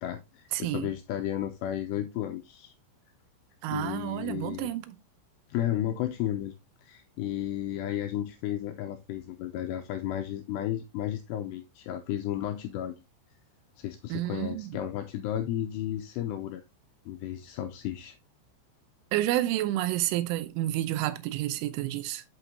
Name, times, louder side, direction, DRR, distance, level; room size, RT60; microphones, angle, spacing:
voice 1, 0.0-2.7 3.7-4.7 5.5-6.6 6.8-13.0 13.8-16.6 17.1-18.2, left 11 dB, 85° left, 2.4 m, -33 dB
voice 2, 0.5-0.9 3.6-5.0 14.1-14.8 19.1-22.2, right 14 dB, 85° right, 3.3 m, -30 dB
8.0 x 8.0 x 2.7 m
omnidirectional pair, 5.5 m